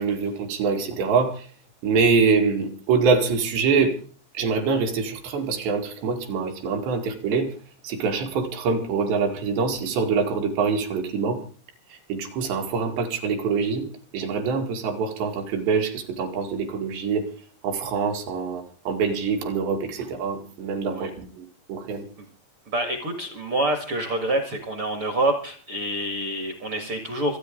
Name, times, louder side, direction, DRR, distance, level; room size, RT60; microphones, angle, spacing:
voice 1, 0.0-1.5 1.8-3.9 4.3-7.5 7.8-11.4 11.9-13.9 14.1-17.3 17.6-22.1, right 5 dB, 75° right, 3 dB, 4.3 m, -25 dB
voice 2, 22.7-27.4, right 1 dB, 50° right, 6 dB, 1.6 m, -27 dB
26.5 x 9.4 x 3.7 m, 0.42 s
omnidirectional pair, 5.1 m